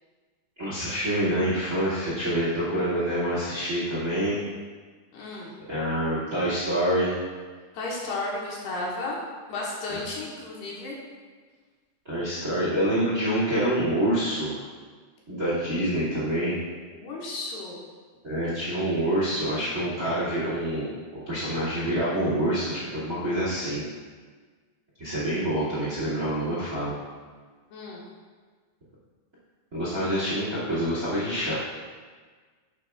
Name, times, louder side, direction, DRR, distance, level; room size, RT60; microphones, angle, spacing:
voice 1, 0.6-4.4 5.7-7.1 9.9-10.0 12.0-14.6 15.3-16.6 18.2-20.9 21.3-23.8 25.0-26.9 29.7-31.5, right 1 dB, 30° right, -7 dB, 1.8 m, -26 dB
voice 2, 5.1-5.5 7.7-9.2 9.5-11.0 16.9-17.8 27.7-28.0, left 2 dB, 70° left, -4 dB, 3.0 m, -33 dB
12.0 x 8.4 x 2.4 m, 1.5 s
omnidirectional pair, 5.2 m